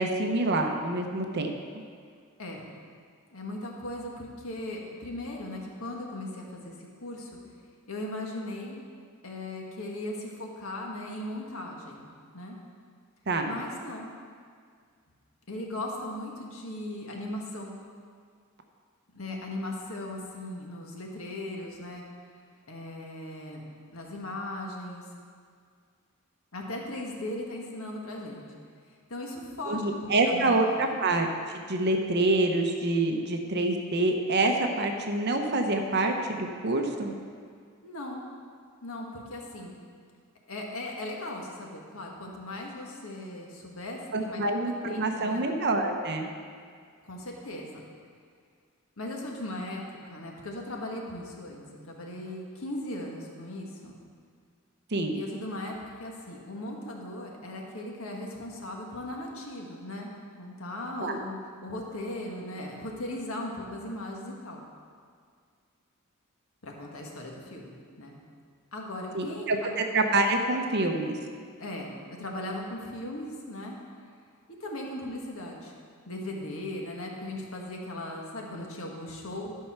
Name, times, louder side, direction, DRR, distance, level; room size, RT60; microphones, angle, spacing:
voice 1, 0.0-1.5 13.3-13.5 29.7-31.3 31.5-37.1 44.1-46.3 54.9-55.2 61.0-61.2 69.1-71.2, right 2 dB, 55° right, 4 dB, 0.9 m, -26 dB
voice 2, 3.3-7.4 7.9-8.9 9.2-12.0 12.3-12.6 13.4-14.1 15.5-17.8 19.1-22.0 22.7-23.6 23.9-25.0 26.5-28.4 29.1-30.9 37.8-38.2 38.8-39.8 40.5-44.4 44.8-45.5 47.0-47.8 49.0-54.0 55.1-60.1 60.4-64.6 66.6-68.1 68.7-69.7 71.6-73.8 74.6-75.7 76.0-79.6, left 1 dB, 85° left, -1 dB, 1.6 m, -38 dB
12.0 x 5.5 x 6.0 m, 2.1 s
head